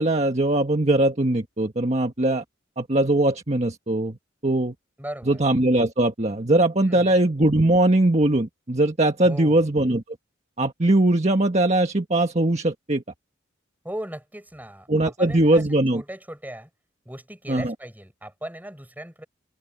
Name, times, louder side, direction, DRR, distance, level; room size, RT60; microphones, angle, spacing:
voice 1, 0.0-2.4 2.8-4.2 4.4-4.7 5.3-10.0 10.6-13.0 14.9-16.0 17.5-17.7, right 1 dB, 35° right, 1.5 m, -21 dB
voice 2, 5.0-5.4 6.8-7.2 9.2-9.7 13.8-16.7 17.1-19.2, right 1 dB, 10° right, 7.3 m, -38 dB
head